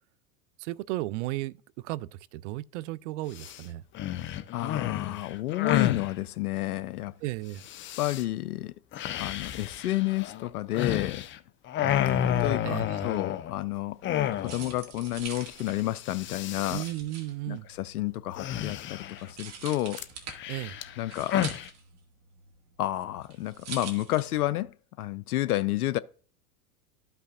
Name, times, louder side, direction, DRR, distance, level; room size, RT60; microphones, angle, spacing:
voice 1, 0.6-3.8 7.2-7.6 11.8-13.0 16.7-17.7 20.5-20.8, right 17 dB, 55° right, 0.5 m, -35 dB
sound 1, 3.3-3.6 3.9-6.1 7.6-8.2 8.9-11.4 11.7-13.6 14.0-14.8 15.1-15.2 15.4-15.7 16.0-16.9 18.4-19.3 20.0-21.7, left 11 dB, 25° left, 0.6 m, -31 dB
voice 2, 4.5-7.2 8.0-8.7 9.2-11.3 12.3-14.0 14.4-16.8 17.5-20.0 21.0-21.6 22.8-26.0, left 15 dB, 85° left, 0.6 m, -30 dB
sound 2, 13.9-24.7, right 6 dB, 35° right, 2.2 m, -45 dB
13.0 x 5.7 x 2.5 m
hypercardioid pair, 105°, 44 cm